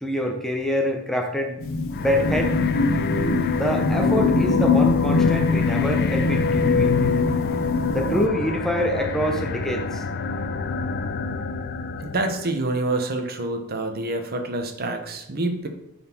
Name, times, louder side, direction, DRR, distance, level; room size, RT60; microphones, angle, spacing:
voice 1, 0.0-1.6 2.0-2.6 3.5-6.9 7.9-10.0, equal, ahead, 3 dB, 0.6 m, -25 dB
sound 1, 1.6-8.3, left 3 dB, 65° left, 0.9 m, -24 dB
sound 2, 1.9-12.5, left 4 dB, 45° left, 0.5 m, -26 dB
voice 2, 12.0-15.7, right 2 dB, 45° right, 5 dB, 1.0 m, -27 dB
9.0 x 4.2 x 4.4 m, 0.82 s
head